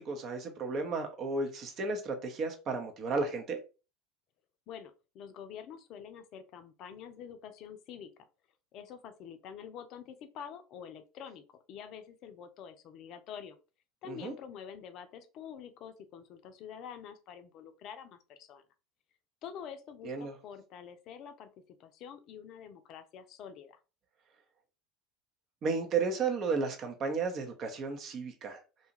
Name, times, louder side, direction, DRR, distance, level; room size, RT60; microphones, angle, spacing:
voice 1, 0.0-3.6 14.1-14.3 20.0-20.3 25.6-28.6, right 4 dB, 45° right, 4 dB, 0.7 m, -33 dB
voice 2, 4.7-8.1 8.7-13.6 14.0-18.6 19.4-21.5 21.8-23.8, left 8 dB, 55° left, 9 dB, 0.5 m, -47 dB
2.7 x 2.3 x 2.9 m, 0.32 s
hypercardioid pair, 80°, 0 cm